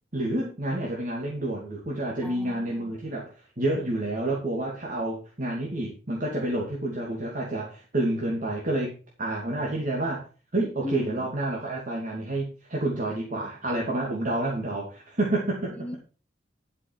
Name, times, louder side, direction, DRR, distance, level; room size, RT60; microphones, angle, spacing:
voice 1, 0.1-8.9 9.2-10.2 10.5-15.8, right 1 dB, 45° right, -3 dB, 2.5 m, -29 dB
voice 2, 2.2-3.0 10.8-11.3 15.7-16.0, left 1 dB, 10° left, 8 dB, 1.1 m, -37 dB
11.0 x 6.2 x 5.6 m, 0.36 s
head